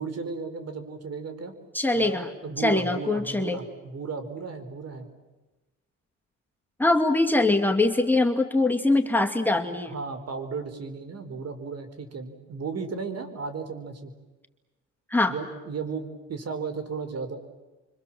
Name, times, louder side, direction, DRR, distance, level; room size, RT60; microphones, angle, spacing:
voice 1, 0.0-1.5 1.9-5.1 9.9-14.1 15.3-17.4, right 5 dB, 55° right, 8 dB, 4.8 m, -35 dB
voice 2, 1.7-2.3 2.6-3.6 6.8-9.9 15.1-15.4, left 2 dB, 5° left, 2 dB, 2.2 m, -23 dB
30.0 x 25.0 x 7.7 m, 1.1 s
cardioid pair, 90°, 30 cm